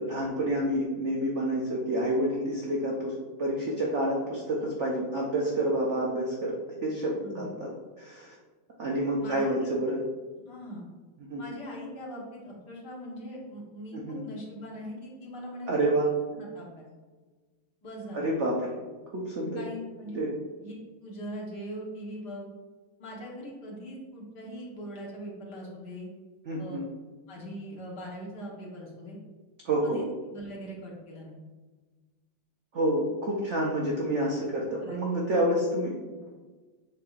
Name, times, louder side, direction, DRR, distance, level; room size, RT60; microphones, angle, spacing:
voice 1, 0.0-7.7 8.0-8.3 8.8-10.0 11.3-11.4 13.9-14.2 15.7-16.1 18.1-18.8 19.1-19.6 20.1-20.3 26.5-26.8 29.6-30.0 32.7-36.0, right 1 dB, 80° right, -3 dB, 0.6 m, -28 dB
voice 2, 9.2-9.7 10.5-10.8 11.4-15.9 16.3-16.9 17.8-18.2 19.5-20.2 20.6-20.7 21.0-22.5 23.0-26.1 26.6-26.8 27.3-29.2 29.8-30.0 30.3-31.3 34.8-35.0 35.3-35.4, equal, 60° left, -3 dB, 1.6 m, -41 dB
7.4 x 2.8 x 2.4 m, 1.3 s
omnidirectional pair, 2.1 m